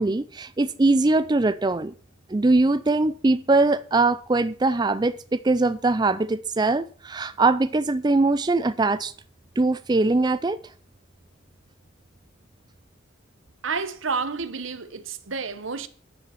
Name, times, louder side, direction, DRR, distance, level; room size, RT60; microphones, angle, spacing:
voice 1, 0.0-1.9 2.3-9.1 9.6-10.6, right 2 dB, 20° right, 0.4 m, -22 dB
voice 2, 13.6-15.9, right 5 dB, 75° right, 1.1 m, -30 dB
10.5 x 7.1 x 7.6 m
head